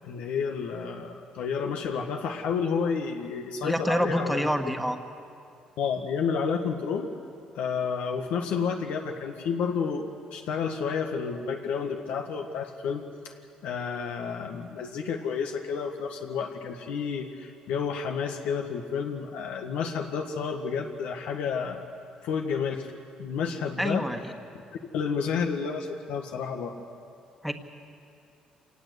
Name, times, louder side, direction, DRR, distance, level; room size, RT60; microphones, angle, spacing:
voice 1, 0.0-4.5 5.8-7.1 7.5-13.3 13.6-21.8 22.2-22.9 23.2-24.0 24.9-26.7, left 6 dB, 90° left, 3 dB, 1.6 m, -30 dB
voice 2, 3.6-5.0 23.8-24.2 27.4-27.5, equal, ahead, 5 dB, 1.6 m, -27 dB
26.5 x 19.0 x 8.2 m, 2.4 s
cardioid pair, 115°, 2 cm